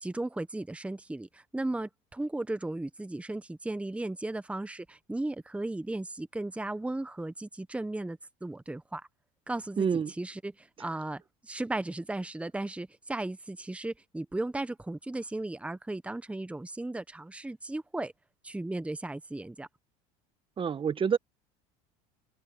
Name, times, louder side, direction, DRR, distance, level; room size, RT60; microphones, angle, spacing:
voice 1, 0.0-9.1 9.5-18.1 18.4-19.7, right 2 dB, 5° right, 1.2 m, -36 dB
voice 2, 9.8-10.1 20.6-21.2, right 6 dB, 30° right, 1.5 m, -27 dB
supercardioid pair, 90°, 18 cm